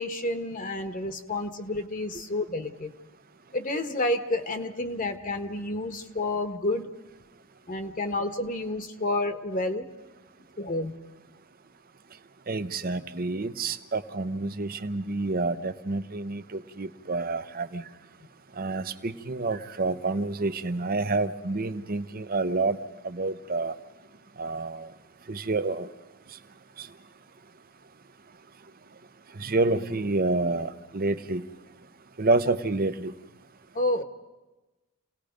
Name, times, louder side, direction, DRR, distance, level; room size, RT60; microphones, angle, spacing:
voice 1, 0.0-2.9 3.5-6.9 7.7-9.9 10.6-10.9 33.7-34.0, left 2 dB, 35° left, 8 dB, 1.2 m, -30 dB
voice 2, 12.5-17.9 18.5-22.8 23.0-23.8 24.4-24.9 25.3-25.9 26.3-26.4 26.8-26.9 29.3-31.5 32.2-33.1, right 3 dB, 40° right, 11 dB, 0.9 m, -28 dB
28.5 x 18.5 x 5.2 m, 1.1 s
head